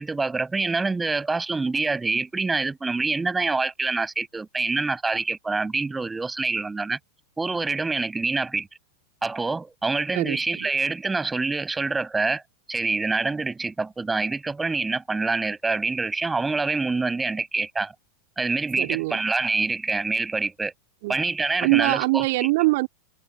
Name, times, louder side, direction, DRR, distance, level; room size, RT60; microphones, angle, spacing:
voice 1, 0.0-7.0 7.4-8.7 9.2-12.4 12.7-17.9 18.4-20.7 21.1-22.2, right 3 dB, 10° right, 5.7 m, -26 dB
voice 2, 10.1-10.7 18.8-19.2 21.0-21.2 21.6-22.9, right 22 dB, 50° right, 2.9 m, -23 dB
figure-of-eight pair, 90°, 0 cm